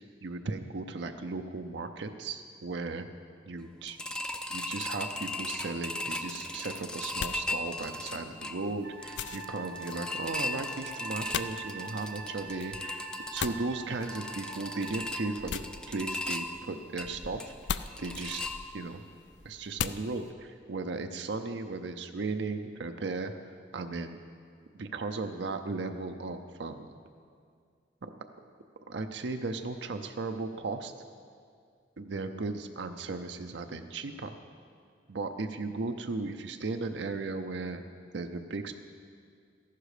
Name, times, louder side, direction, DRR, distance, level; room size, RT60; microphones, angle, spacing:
voice 1, 0.0-3.1 3.5-4.0 4.5-13.1 13.3-17.5 18.0-18.4 18.7-19.0 19.4-24.2 24.7-27.0 28.0-28.1 28.9-30.9 32.0-34.3 35.1-37.8 38.1-38.7, right 3 dB, 75° right, 6 dB, 0.6 m, -36 dB
sound 1, 3.9-19.0 19.4-19.5 19.9-20.0, left 1 dB, 5° left, 0.4 m, -38 dB
sound 2, 6.5-20.3, left 8 dB, 75° left, 0.4 m, -42 dB
Wind instrument woodwind instrument, 8.8-15.6, right 3 dB, 55° right, 1.0 m, -44 dB
14.0 x 11.5 x 5.0 m, 2.2 s
head